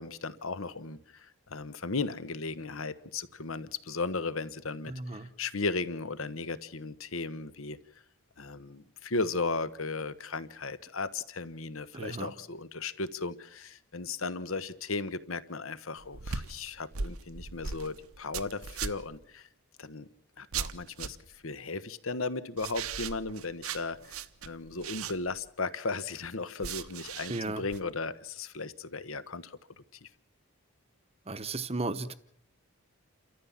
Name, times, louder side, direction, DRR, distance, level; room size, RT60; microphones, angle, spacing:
voice 1, 0.0-7.8 8.4-19.5 19.8-20.1 20.4-24.2 24.4-29.6 30.0-30.1, left 3 dB, 65° left, 14 dB, 1.2 m, -36 dB
voice 2, 4.9-5.3 11.9-12.3 27.3-27.6 31.3-32.1, right 2 dB, 25° right, 12 dB, 1.0 m, -35 dB
sound 1, 16.0-19.2 20.5-21.4 22.6-25.5 26.6-27.8, right 6 dB, 75° right, 1.0 m, -38 dB
29.0 x 14.0 x 7.4 m, 0.72 s
head